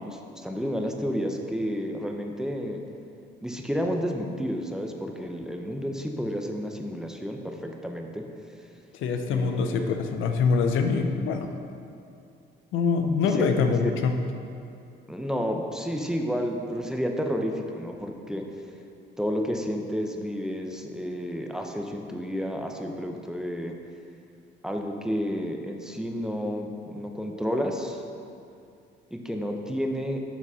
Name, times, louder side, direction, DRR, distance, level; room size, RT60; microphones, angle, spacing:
voice 1, 0.0-2.8 3.4-8.3 9.3-9.9 13.3-13.5 13.8-13.9 15.1-18.4 19.2-23.8 24.6-28.0 29.1-30.2, equal, 5° right, 2 dB, 0.6 m, -31 dB
voice 2, 8.9-11.5 12.7-14.2, left 5 dB, 85° left, 6 dB, 0.6 m, -24 dB
7.4 x 4.0 x 5.6 m, 2.5 s
cardioid pair, 90°, 20 cm